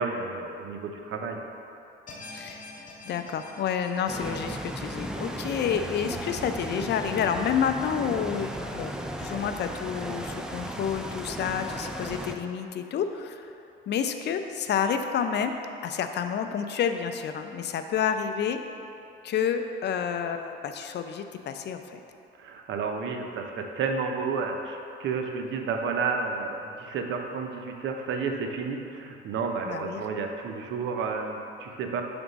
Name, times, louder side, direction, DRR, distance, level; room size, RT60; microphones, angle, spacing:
voice 1, 0.0-1.4 22.4-32.0, right 4 dB, 75° right, 3 dB, 0.6 m, -31 dB
sound 1, 2.1-7.3 7.7-7.8 8.4-8.5, left 2 dB, 40° left, 0.9 m, -48 dB
voice 2, 2.3-8.9 9.2-13.5 13.9-15.5 15.8-18.6 19.2-22.0 29.7-30.0, left 7 dB, 60° left, 7 dB, 0.4 m, -29 dB
sound 2, 4.1-12.4, equal, 5° right, 0.4 m, -35 dB
7.1 x 3.5 x 4.0 m, 2.7 s
cardioid pair, 90°, 20 cm